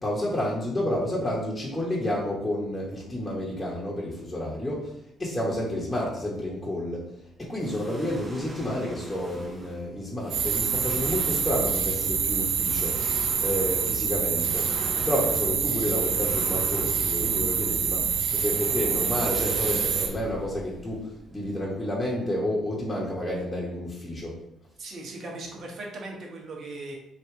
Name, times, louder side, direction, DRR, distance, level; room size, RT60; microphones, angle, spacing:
voice 1, 0.0-4.9 5.2-7.1 7.4-13.0 13.4-14.7 15.0-21.0 21.3-24.3, left 1 dB, 20° left, -6 dB, 1.3 m, -30 dB
sound 1, 7.6-21.5, right 1 dB, 30° right, 1.0 m, -41 dB
sound 2, 10.3-20.1, right 6 dB, 70° right, 0.5 m, -26 dB
voice 2, 24.8-26.9, right 2 dB, 55° right, 0 dB, 1.2 m, -38 dB
3.2 x 2.9 x 4.6 m, 0.83 s
hypercardioid pair, 50°, 0 cm